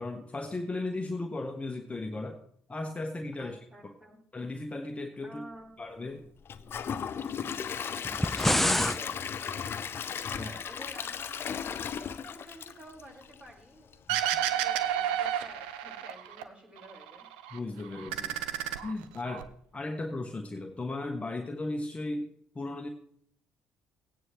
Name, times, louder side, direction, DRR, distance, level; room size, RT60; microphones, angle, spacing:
voice 1, 0.0-2.4 2.7-3.9 4.3-5.4 5.8-6.2 8.6-8.9 10.4-10.5 14.1-14.4 17.5-18.4 18.8-19.5 19.7-22.3 22.5-22.9, left 2 dB, 25° left, 4 dB, 1.2 m, -36 dB
voice 2, 3.4-4.2 5.2-5.7 8.7-9.9 10.2-13.9 14.3-17.3, equal, 20° right, -1 dB, 4.8 m, -51 dB
Gurgling / Toilet flush / Trickle dribble, 6.5-13.5 13.9-14.0 14.5-14.6, left 7 dB, 45° left, 0.6 m, -36 dB
Roce de sombrero, 8.0-9.0, left 1 dB, 5° left, 0.3 m, -26 dB
sound 1, 14.1-16.4 16.8-17.6 17.9-19.4, right 11 dB, 80° right, 0.6 m, -31 dB
16.5 x 9.4 x 3.1 m, 0.63 s
hypercardioid pair, 50°, 5 cm